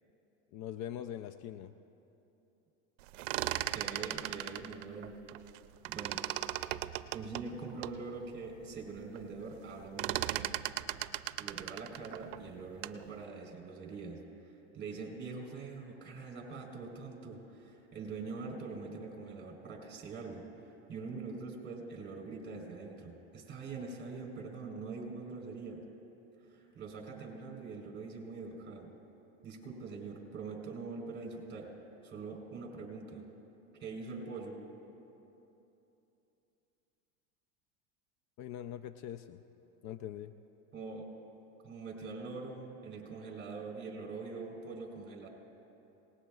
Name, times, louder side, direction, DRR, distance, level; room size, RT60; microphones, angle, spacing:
voice 1, 0.5-1.7 38.4-39.4 39.8-40.3, left 10 dB, 50° left, 11 dB, 0.5 m, -42 dB
sound 1, 3.0-5.6 5.8-8.0 8.5-8.6 8.8-9.3 9.5-13.1, right 15 dB, 75° right, 0.6 m, -37 dB
voice 2, 3.7-5.2 5.8-6.2 6.7-10.6 11.4-25.8 26.4-28.9 29.4-31.7 32.0-33.2 33.8-34.6 40.7-41.1 41.6-45.3, right 4 dB, 30° right, 1 dB, 4.0 m, -44 dB
27.5 x 18.5 x 2.4 m, 3.0 s
supercardioid pair, 110°, 38 cm